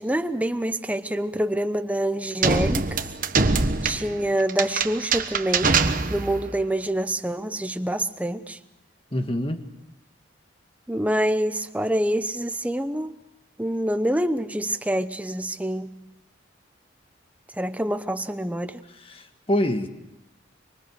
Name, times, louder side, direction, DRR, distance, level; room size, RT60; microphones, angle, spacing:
voice 1, 0.0-3.0 3.8-5.8 6.1-8.6 10.9-13.2 13.6-15.9 17.5-18.8, right 1 dB, 5° right, 10 dB, 0.8 m, -26 dB
sound 1, 2.4-6.5, right 4 dB, 45° right, 1.2 m, -24 dB
voice 2, 9.1-9.6 19.1-19.9, left 1 dB, 30° left, 7 dB, 1.6 m, -25 dB
25.0 x 24.5 x 6.6 m, 0.91 s
head